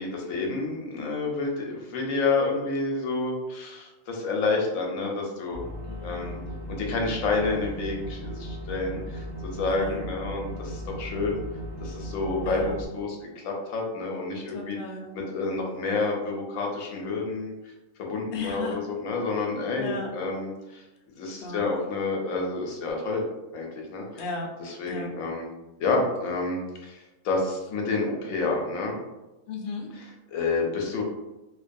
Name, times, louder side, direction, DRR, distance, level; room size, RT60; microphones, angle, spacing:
voice 1, 0.0-5.7 6.0-6.4 6.7-11.4 11.8-14.8 15.1-17.5 18.0-20.8 21.2-23.2 23.5-24.0 24.6-25.5 25.8-29.0 30.0-31.0, left 3 dB, 90° left, 0 dB, 1.0 m, -29 dB
sound 1, 5.5-12.9, equal, 50° right, 0.4 m, -37 dB
voice 2, 5.8-6.5 9.7-10.0 12.4-12.8 14.5-15.1 18.3-18.8 19.8-20.1 21.4-21.7 24.2-24.5 24.9-25.1 29.5-29.9, left 4 dB, 65° left, 1 dB, 0.6 m, -36 dB
2.4 x 2.2 x 2.5 m, 1.0 s
omnidirectional pair, 1.4 m